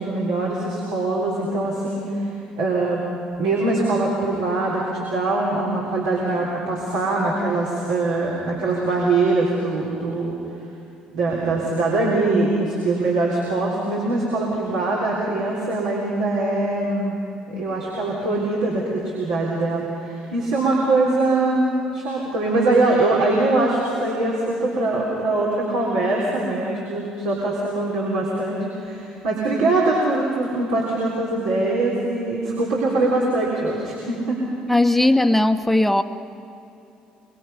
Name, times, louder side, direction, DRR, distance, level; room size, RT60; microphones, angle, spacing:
voice 1, 0.0-3.0 3.4-10.4 11.1-17.2 17.5-34.4, right 2 dB, 75° right, -5 dB, 3.7 m, -22 dB
voice 2, 34.7-36.0, left 1 dB, 5° left, 7 dB, 1.1 m, -17 dB
24.0 x 24.0 x 5.7 m, 2.8 s
hypercardioid pair, 55°, 4 cm